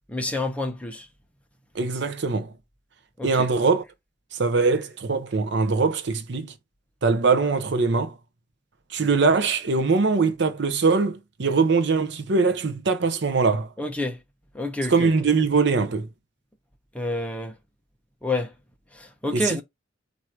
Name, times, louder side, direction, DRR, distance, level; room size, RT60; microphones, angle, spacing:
voice 1, 0.1-1.1 3.2-3.3 13.8-14.2 14.5-15.1 16.9-17.5 18.2-18.5 18.9-19.6, left 2 dB, 5° left, 0.8 m, -28 dB
voice 2, 1.7-2.5 3.2-3.8 4.3-6.5 7.0-8.1 8.9-13.7 14.9-16.1 19.3-19.6, right 4 dB, 60° right, 0.6 m, -22 dB
4.5 x 2.7 x 4.4 m
head